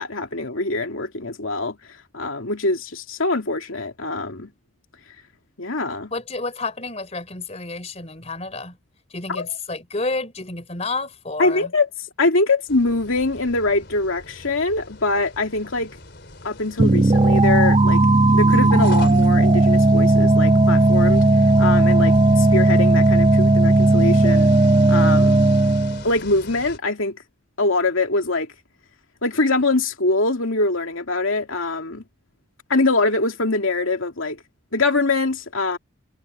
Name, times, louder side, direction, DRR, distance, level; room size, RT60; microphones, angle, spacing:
voice 1, 0.0-1.8 2.1-4.5 5.6-6.1 9.3-9.4 11.4-11.9 12.2-16.0 16.4-18.0 18.3-21.3 21.6-24.5 24.9-25.4 26.0-27.2 27.6-28.5 29.2-32.0 32.7-34.4 34.7-35.8, left 2 dB, 70° left, 2.5 m, -23 dB
voice 2, 6.1-8.8 9.1-11.7, left 3 dB, 30° left, 3.7 m, -30 dB
sound 1, 12.7-26.8, left 2 dB, 50° left, 4.4 m, -41 dB
sound 2, 16.8-26.0, right 2 dB, 25° right, 0.5 m, -15 dB
head